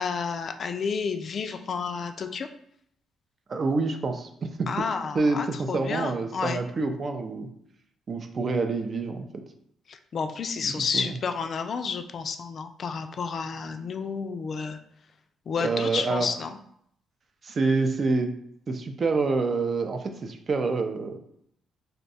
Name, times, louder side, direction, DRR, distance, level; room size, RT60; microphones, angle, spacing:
voice 1, 0.0-2.5 4.7-6.6 9.9-14.8 15.5-16.6, left 5 dB, 50° left, 7 dB, 0.3 m, -31 dB
voice 2, 3.5-4.7 5.1-7.5 8.1-9.3 10.6-11.1 15.6-16.3 17.4-18.3 18.7-21.2, right 3 dB, 45° right, 6 dB, 0.4 m, -27 dB
2.6 x 2.2 x 4.0 m, 0.69 s
cardioid pair, 90°, 0 cm